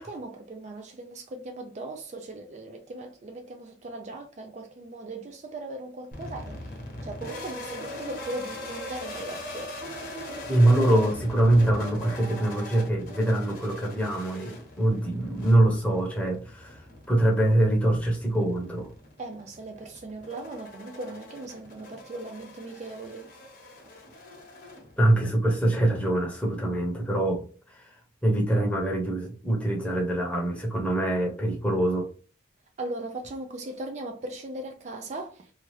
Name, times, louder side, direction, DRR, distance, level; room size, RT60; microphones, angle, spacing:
voice 1, 0.0-6.8 7.0-9.7 19.2-23.3 32.8-35.5, right 2 dB, 40° right, 0.3 m, -38 dB
sound 1, 6.1-25.3, left 1 dB, 50° left, 0.8 m, -41 dB
voice 2, 10.5-16.8 17.1-18.9 25.0-27.9 28.2-32.1, right 1 dB, 5° left, 0.8 m, -24 dB
2.8 x 2.3 x 3.1 m
head